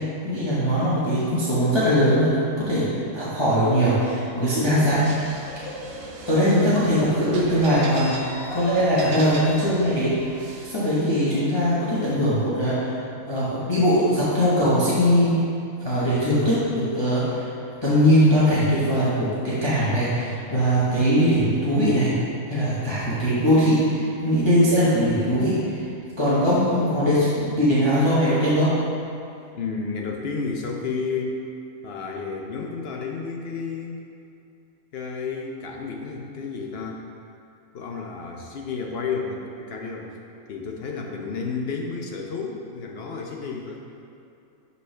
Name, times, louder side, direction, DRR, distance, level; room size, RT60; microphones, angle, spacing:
voice 1, 0.2-2.9 3.1-5.1 6.3-8.1 8.5-10.1 10.6-15.4 15.8-17.5 17.8-22.1 22.5-25.9 26.2-28.8, equal, 20° left, -10 dB, 1.0 m, -21 dB
sound 1, 4.9-11.2, right 2 dB, 55° right, 0.7 m, -40 dB
Laughter, 5.2-10.0, equal, 80° left, 2.0 m, -39 dB
voice 2, 29.5-31.4 31.8-34.0 34.9-37.0 37.7-40.1 40.5-43.8, left 4 dB, 60° left, 1 dB, 0.6 m, -31 dB
6.4 x 5.4 x 3.2 m, 2.5 s
omnidirectional pair, 1.5 m